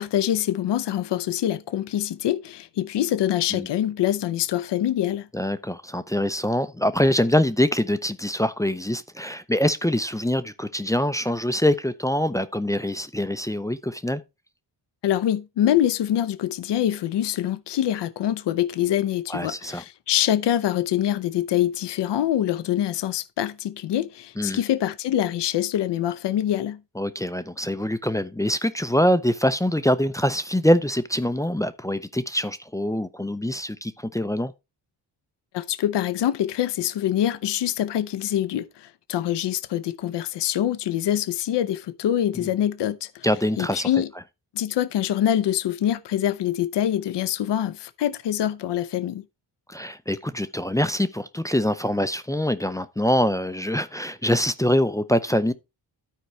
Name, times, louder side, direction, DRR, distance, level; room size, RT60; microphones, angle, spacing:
voice 1, 0.0-5.3 15.0-26.8 35.5-43.3 43.6-44.1 44.5-49.2, left 11 dB, 65° left, 0.7 m, -25 dB
voice 2, 5.3-14.2 19.3-19.8 24.4-24.6 27.0-34.5 42.4-42.5 43.2-43.9 49.7-55.5, left 1 dB, 10° left, 0.5 m, -24 dB
13.0 x 4.5 x 3.1 m
cardioid pair, 80°, 45 cm